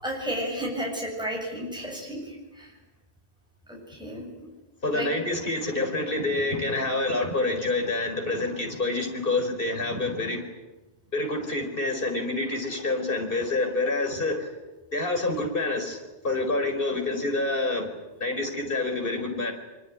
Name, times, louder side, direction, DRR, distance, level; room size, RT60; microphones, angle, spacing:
voice 1, 0.0-2.7 3.7-4.5 4.9-5.1, equal, 5° right, -1 dB, 7.7 m, -33 dB
voice 2, 4.8-10.4 11.1-14.5 14.9-16.0 16.2-17.9 18.2-19.5, left 2 dB, 55° left, 4 dB, 5.0 m, -27 dB
24.5 x 24.5 x 9.8 m, 1.1 s
omnidirectional pair, 1.1 m